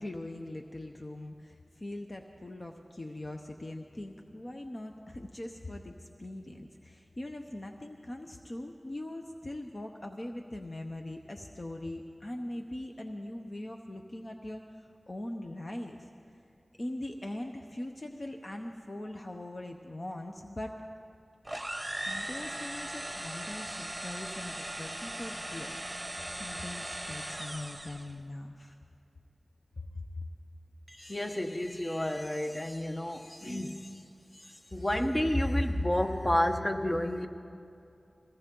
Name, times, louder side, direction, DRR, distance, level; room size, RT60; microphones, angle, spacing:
voice 1, 0.0-14.6 15.1-16.1 16.8-20.7 22.1-28.8 29.8-30.0, left 1 dB, 45° left, 3 dB, 0.8 m, -41 dB
sound 1, 21.4-28.1, right 1 dB, 15° right, 1.1 m, -39 dB
voice 2, 30.9-34.1 34.3-37.3, left 1 dB, 30° left, 5 dB, 1.1 m, -30 dB
21.5 x 17.0 x 3.8 m, 2.6 s
wide cardioid pair, 45°, 0 cm